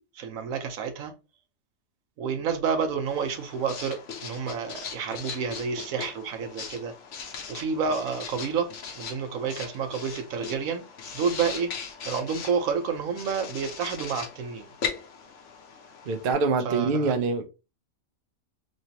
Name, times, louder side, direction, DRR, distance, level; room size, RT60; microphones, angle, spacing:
voice 1, 0.2-1.1 2.2-6.9 7.5-8.7 8.9-10.8 11.1-11.7 12.1-14.7 16.6-17.1, right 6 dB, 75° right, 1.1 m, -29 dB
Writing, 3.1-16.3, left 6 dB, 65° left, 1.0 m, -39 dB
voice 2, 16.1-17.5, right 4 dB, 55° right, 0.6 m, -25 dB
3.1 x 3.0 x 2.7 m
omnidirectional pair, 1.4 m